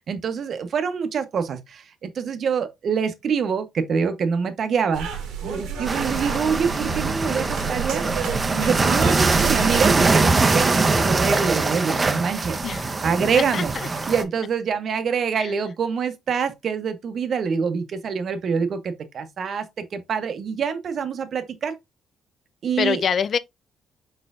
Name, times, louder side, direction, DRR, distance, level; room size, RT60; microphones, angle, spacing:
voice 1, 0.1-5.1 5.4-8.1 8.5-12.6 13.0-13.7 14.1-21.8 22.6-23.0, right 6 dB, 55° right, 0.8 m, -25 dB
sound 1, 4.9-10.1, right 7 dB, 90° right, 1.2 m, -31 dB
sound 2, 5.8-14.2, right 3 dB, 25° right, 0.6 m, -22 dB
voice 2, 12.6-13.0 13.4-13.9 15.4-15.5 22.8-23.4, left 7 dB, 55° left, 0.3 m, -25 dB
4.4 x 4.2 x 2.4 m
cardioid pair, 90°, 0 cm